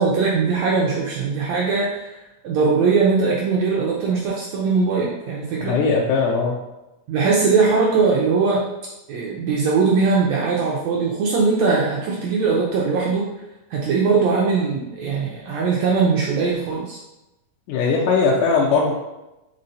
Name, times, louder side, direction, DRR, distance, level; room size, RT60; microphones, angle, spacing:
voice 1, 0.0-2.2 2.4-5.8 7.1-8.6 9.1-13.3 13.7-17.0, right 4 dB, 80° right, -3 dB, 1.5 m, -20 dB
voice 2, 5.6-6.6 17.7-18.9, left 4 dB, 80° left, -3 dB, 2.0 m, -19 dB
5.5 x 3.7 x 2.6 m, 0.97 s
omnidirectional pair, 3.7 m